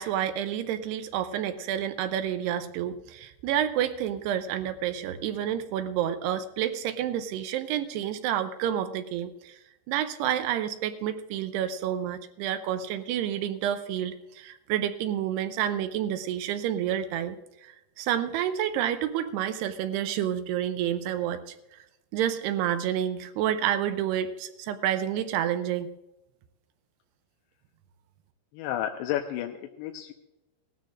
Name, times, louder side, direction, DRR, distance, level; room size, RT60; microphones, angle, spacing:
voice 1, 0.0-9.6 9.9-21.8 22.1-25.9, right 10 dB, 80° right, 10 dB, 2.5 m, -29 dB
voice 2, 28.5-30.1, left 11 dB, 90° left, 3 dB, 3.0 m, -32 dB
18.0 x 13.0 x 2.5 m, 0.94 s
omnidirectional pair, 5.1 m